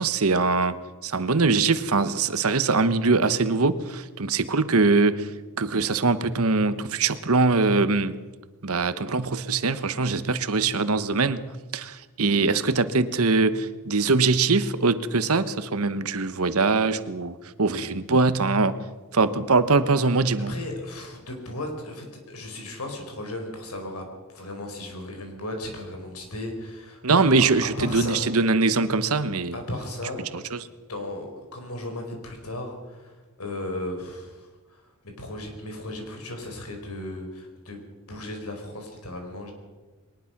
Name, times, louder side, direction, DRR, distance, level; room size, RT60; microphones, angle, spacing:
voice 1, 0.0-5.3 5.6-8.2 8.6-18.8 19.1-20.6 27.0-29.6 30.3-30.7, right 3 dB, 80° right, 13 dB, 1.1 m, -22 dB
voice 2, 20.5-28.2 29.5-30.5 30.9-34.8 35.2-37.8 38.1-39.5, left 1 dB, 85° left, 4 dB, 5.0 m, -36 dB
21.5 x 20.0 x 6.0 m, 1.3 s
head